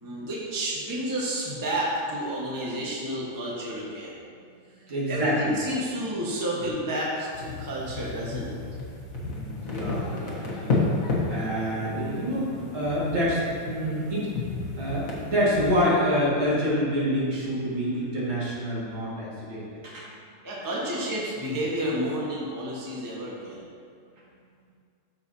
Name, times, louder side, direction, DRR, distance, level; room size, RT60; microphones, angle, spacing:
voice 1, 0.0-4.2 5.1-8.5 20.4-23.6, right 1 dB, 10° right, -6 dB, 1.0 m, -30 dB
voice 2, 4.9-5.6 6.5-6.6 9.2-10.8 11.1-14.3 14.8-20.1, equal, 60° right, -7 dB, 2.8 m, -27 dB
sound 1, 7.3-15.7, left 3 dB, 45° left, 1.5 m, -32 dB
13.5 x 5.5 x 2.8 m, 2.2 s
omnidirectional pair, 2.4 m